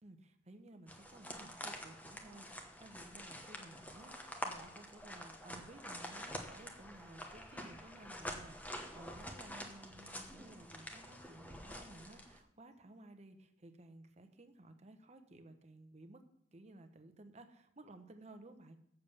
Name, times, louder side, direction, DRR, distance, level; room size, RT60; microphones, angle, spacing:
voice 1, 0.0-16.2 16.5-18.9, right 2 dB, 35° right, 7 dB, 0.9 m, -56 dB
sound 1, 0.9-12.4, equal, 10° left, 1.0 m, -47 dB
7.6 x 6.9 x 6.9 m, 0.77 s
head